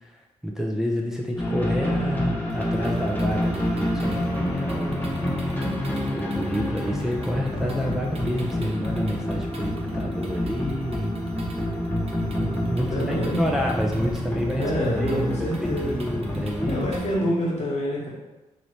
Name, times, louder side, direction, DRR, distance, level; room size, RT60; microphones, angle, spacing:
voice 1, 0.0-5.1 6.2-11.1 12.3-14.7 15.0-16.9, equal, 5° right, -1 dB, 0.4 m, -29 dB
sound 1, 1.4-17.0, left 1 dB, 10° left, 0.9 m, -28 dB
sound 2, 2.5-17.2, right 2 dB, 45° right, 0.7 m, -41 dB
voice 2, 12.9-13.4 14.6-15.9 16.7-18.1, equal, 55° left, -4 dB, 1.1 m, -26 dB
2.9 x 2.6 x 3.2 m, 1.0 s
cardioid pair, 60°, 14 cm